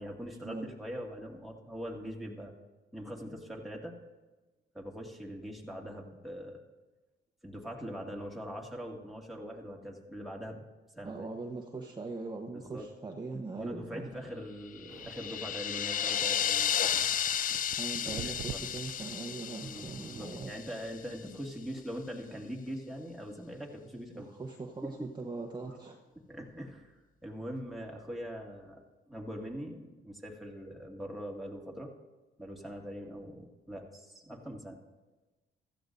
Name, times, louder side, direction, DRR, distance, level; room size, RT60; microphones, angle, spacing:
voice 1, 0.0-2.5 2.9-3.9 4.7-6.6 7.4-10.6 10.9-11.3 12.5-12.9 13.5-17.1 18.0-18.6 19.6-24.3 24.8-25.1 25.6-25.8 26.3-26.9 27.2-28.8 29.1-31.9 32.4-34.8, equal, ahead, -2 dB, 2.1 m, -42 dB
voice 2, 11.0-14.1 17.8-20.5 24.1-26.0, right 3 dB, 20° right, 1 dB, 1.1 m, -40 dB
sound 1, 14.7-21.0, left 9 dB, 45° left, 0.4 m, -33 dB
sound 2, 14.9-20.6, right 12 dB, 70° right, 0.4 m, -49 dB
16.0 x 13.5 x 2.6 m, 1.2 s
cardioid pair, 90°, 20 cm